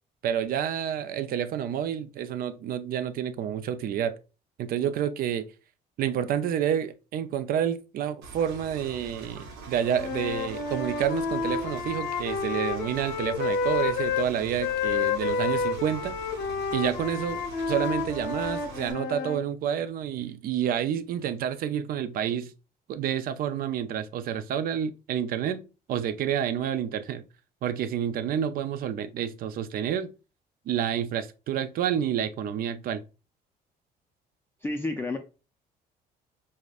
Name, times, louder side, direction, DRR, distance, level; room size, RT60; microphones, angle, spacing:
voice 1, 0.2-4.2 4.6-5.5 6.0-16.2 16.7-17.4 17.7-22.5 22.9-27.2 27.6-30.1 30.7-33.0, right 9 dB, 60° right, 0.4 m, -29 dB
Engine, 8.2-18.9, right 2 dB, 85° right, 0.8 m, -44 dB
Wind instrument woodwind instrument, 9.9-14.3 14.6-19.4, left 5 dB, 80° left, 0.7 m, -30 dB
voice 2, 34.6-35.2, left 2 dB, 15° left, 0.4 m, -30 dB
4.8 x 2.1 x 2.4 m
cardioid pair, 110°, 17 cm